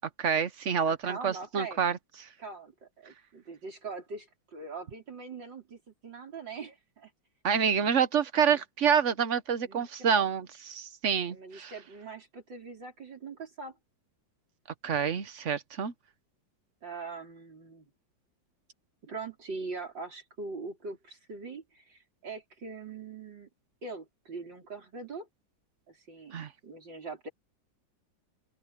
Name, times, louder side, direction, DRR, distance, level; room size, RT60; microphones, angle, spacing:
voice 1, 0.2-2.3 7.4-11.7 14.8-15.9 26.3-26.5, right 7 dB, 50° right, 1.0 m, -28 dB
voice 2, 0.8-1.8 2.4-7.1 8.5-8.6 9.6-10.3 11.3-13.8 16.8-17.9 19.0-23.5 23.8-25.3 25.9-27.3, right 4 dB, 65° right, 5.6 m, -42 dB
open air
omnidirectional pair, 2.1 m